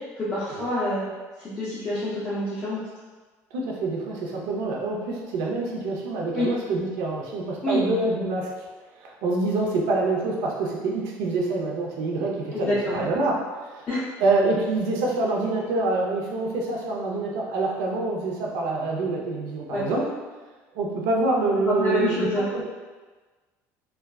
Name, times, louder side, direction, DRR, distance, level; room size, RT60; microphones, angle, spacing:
voice 1, 0.2-1.1 1.4-2.8 6.3-6.5 7.6-7.8 12.5-13.0 13.9-14.0 19.7-19.8 21.6-22.5, left 1 dB, 15° left, -10 dB, 0.4 m, -26 dB
voice 2, 3.5-8.7 9.0-13.4 13.6-13.9 14.2-20.1 20.7-22.7, right 2 dB, 80° right, -2 dB, 0.6 m, -26 dB
3.3 x 2.3 x 2.3 m, 1.3 s
cardioid pair, 180°, 6 cm